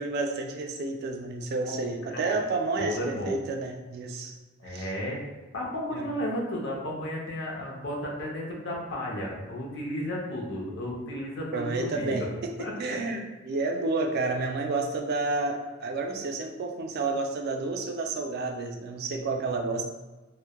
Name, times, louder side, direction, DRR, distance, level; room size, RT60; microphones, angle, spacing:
voice 1, 0.0-3.0 3.2-4.4 4.6-4.9 5.9-6.1 11.0-11.1 11.5-12.3 12.8-19.9, right 3 dB, 50° right, 4 dB, 0.3 m, -30 dB
voice 2, 1.7-2.4 2.8-3.3 4.6-5.2 5.5-12.2 12.6-12.7, equal, 60° left, -2 dB, 0.5 m, -33 dB
2.1 x 2.0 x 2.8 m, 1.2 s
head